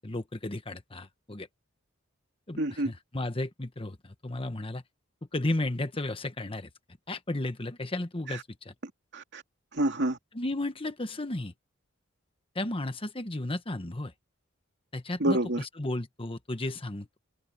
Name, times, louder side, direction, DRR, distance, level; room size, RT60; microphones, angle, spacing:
voice 1, 0.0-1.5 2.5-4.8 5.3-6.7 7.1-8.7 10.3-11.5 12.5-14.1 14.9-17.2, left 2 dB, 25° left, 1.3 m, -34 dB
voice 2, 2.6-2.9 8.3-8.4 8.8-9.4 9.7-10.2 15.2-15.6, right 1 dB, 60° right, 2.7 m, -28 dB
open air
head